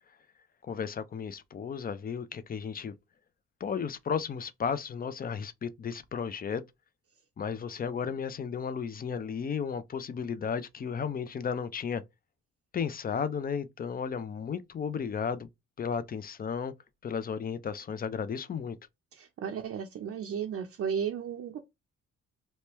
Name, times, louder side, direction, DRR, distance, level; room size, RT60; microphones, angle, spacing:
voice 1, 0.6-2.9 3.6-6.6 7.4-12.0 12.7-15.5 15.8-16.7 17.0-18.8, left 6 dB, 30° left, 0.4 m, -34 dB
voice 2, 19.2-21.6, right 7 dB, 50° right, 0.5 m, -34 dB
3.0 x 2.2 x 3.0 m
cardioid pair, 90°, 30 cm